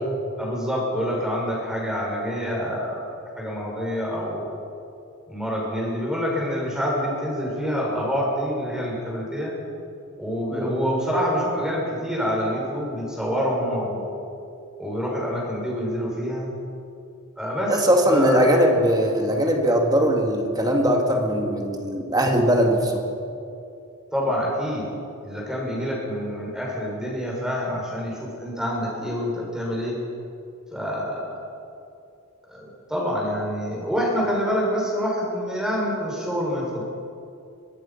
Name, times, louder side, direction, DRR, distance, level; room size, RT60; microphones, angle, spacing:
voice 1, 0.4-4.5 5.3-9.5 10.2-14.1 14.8-16.5 17.4-18.4 24.1-24.9 25.2-30.0 30.7-31.4 32.5-36.8, equal, 5° right, -3 dB, 6.2 m, -27 dB
voice 2, 10.5-10.8 17.7-23.0, equal, 20° right, 2 dB, 2.5 m, -20 dB
24.5 x 19.5 x 5.9 m, 2.6 s
head